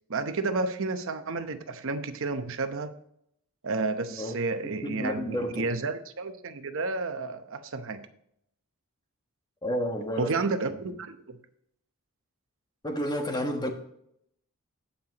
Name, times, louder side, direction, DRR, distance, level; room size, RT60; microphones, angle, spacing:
voice 1, 0.1-3.0 3.6-8.1 10.2-11.4, right 3 dB, 60° right, 9 dB, 0.9 m, -31 dB
voice 2, 4.6-5.7 9.6-10.3 12.8-13.7, equal, 20° left, 4 dB, 1.3 m, -31 dB
16.5 x 5.8 x 2.9 m, 0.73 s
head